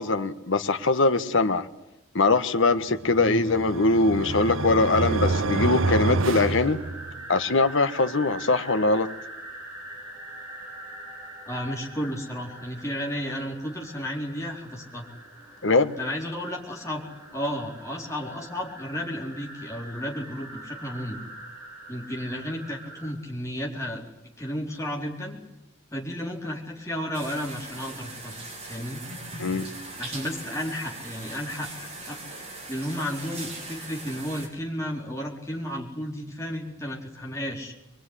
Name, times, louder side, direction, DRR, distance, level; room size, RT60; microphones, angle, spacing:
voice 1, 0.0-1.7 2.1-6.8 7.3-9.1 15.6-16.0 29.4-29.7, left 3 dB, 65° left, 9 dB, 1.4 m, -22 dB
sound 1, 3.1-7.4, right 3 dB, 70° right, 0.9 m, -27 dB
sound 2, 6.6-23.1, right 1 dB, 10° right, 6.1 m, -44 dB
voice 2, 11.5-15.1 16.0-17.0 17.3-21.2 21.9-24.0 24.4-25.4 25.9-28.4 28.6-29.0 30.0-32.2 32.7-37.7, equal, 15° left, 0 dB, 4.4 m, -33 dB
sound 3, 27.1-34.5, right 2 dB, 30° right, 6.5 m, -40 dB
23.0 x 23.0 x 10.0 m, 0.92 s
head